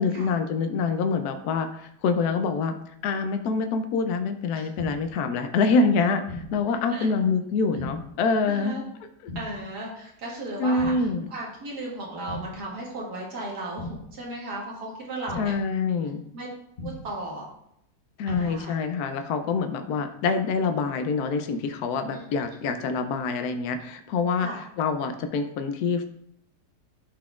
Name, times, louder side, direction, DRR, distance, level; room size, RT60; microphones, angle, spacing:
voice 1, 0.0-2.7 3.0-8.8 9.2-9.3 10.6-11.3 15.4-16.2 18.2-24.5 24.8-26.0, left 4 dB, 75° left, 7 dB, 1.1 m, -26 dB
sound 1, 4.8-5.2 6.3-6.7 7.8-8.2 9.3-9.7 10.8-11.2 12.3-12.7 13.8-14.2 15.3-15.7 16.8-17.2 18.3-18.7, left 1 dB, 50° left, 0.7 m, -38 dB
voice 2, 6.6-7.1 8.4-8.8 9.4-15.5 16.3-16.5 16.8-17.5 18.3-18.7 22.1-22.4 24.4-24.6, right 2 dB, 80° right, -3 dB, 2.1 m, -36 dB
11.5 x 4.0 x 2.4 m, 0.74 s
omnidirectional pair, 1.7 m